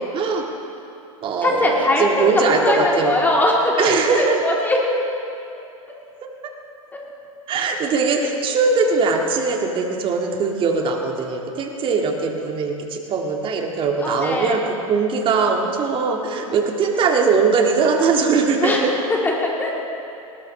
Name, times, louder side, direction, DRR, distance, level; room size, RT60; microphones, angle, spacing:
voice 1, 0.1-0.4 1.2-3.1 3.8-4.4 7.5-14.6 14.9-18.9, right 4 dB, 30° right, 2 dB, 2.0 m, -20 dB
voice 2, 1.4-4.8 5.5-5.6 14.0-14.6 18.6-19.7, left 1 dB, 10° left, -3 dB, 3.2 m, -21 dB
20.0 x 19.0 x 3.3 m, 2.7 s
hypercardioid pair, 100°, 18 cm